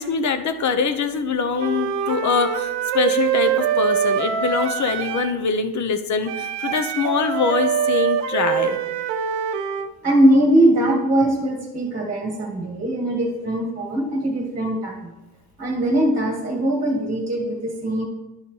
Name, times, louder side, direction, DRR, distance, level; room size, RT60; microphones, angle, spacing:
voice 1, 0.0-8.8, left 5 dB, 40° left, 9 dB, 0.8 m, -23 dB
Wind instrument woodwind instrument, 1.6-5.4 6.2-9.9, right 8 dB, 85° right, 0.7 m, -24 dB
voice 2, 10.0-15.1 15.6-18.0, right 1 dB, 15° right, -1 dB, 1.6 m, -21 dB
10.5 x 5.6 x 3.2 m, 1.0 s
cardioid pair, 120°, 43 cm